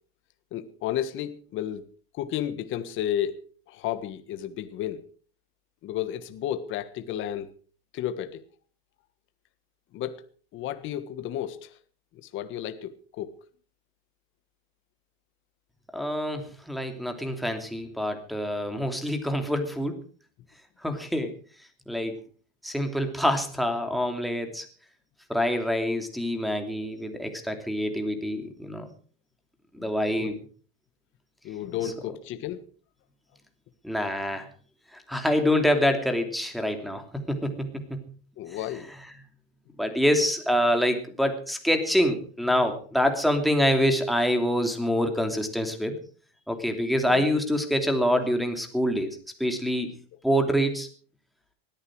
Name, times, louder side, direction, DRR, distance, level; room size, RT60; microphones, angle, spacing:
voice 1, 0.5-1.8 2.1-3.4 3.7-5.1 5.8-7.5 7.9-8.4 9.9-10.2 10.5-11.8 12.3-13.3 29.8-30.3 31.4-32.6 38.4-38.9 47.1-47.3, left 11 dB, 40° left, 10 dB, 1.6 m, -32 dB
voice 2, 15.9-20.0 20.8-21.3 21.9-22.2 22.6-24.6 25.3-28.9 29.7-30.4 31.8-31.9 33.8-34.5 34.9-38.0 39.8-46.0 46.5-50.0 50.2-50.9, equal, ahead, 4 dB, 2.9 m, -26 dB
19.5 x 14.0 x 4.8 m, 0.42 s
supercardioid pair, 140°, 30 cm